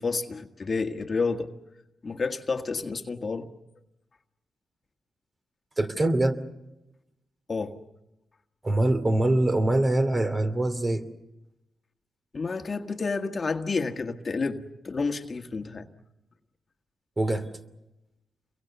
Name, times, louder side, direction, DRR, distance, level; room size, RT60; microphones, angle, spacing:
voice 1, 0.0-1.5 2.0-3.5 7.5-7.8 12.3-15.9, left 4 dB, 40° left, 1.7 m, -30 dB
voice 2, 5.8-6.4 8.6-11.0 17.2-17.5, right 1 dB, 30° right, 2.7 m, -24 dB
28.0 x 23.0 x 6.9 m
cardioid pair, 65°, 0 cm